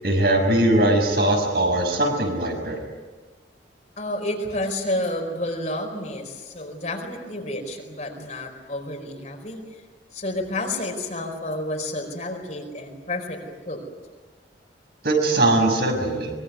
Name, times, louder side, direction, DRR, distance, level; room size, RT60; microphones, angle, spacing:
voice 1, 0.0-2.8 15.0-16.3, right 1 dB, 55° right, 2 dB, 6.3 m, -20 dB
voice 2, 4.0-9.6 10.1-13.8, left 1 dB, 40° left, 3 dB, 4.7 m, -30 dB
24.0 x 22.5 x 9.5 m, 1.3 s
head